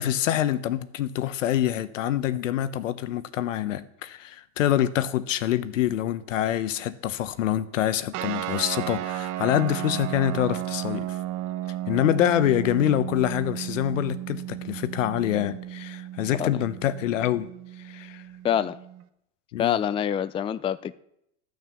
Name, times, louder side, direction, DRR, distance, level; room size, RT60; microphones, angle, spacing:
voice 1, 0.0-11.2 11.9-17.5 17.8-18.2 19.5-19.8, left 11 dB, 85° left, 0.9 m, -26 dB
sound 1, 8.1-19.0, right 14 dB, 50° right, 1.0 m, -34 dB
voice 2, 18.4-18.8 19.6-20.9, left 9 dB, 15° left, 0.4 m, -25 dB
13.0 x 6.4 x 7.0 m
hypercardioid pair, 100°, 37 cm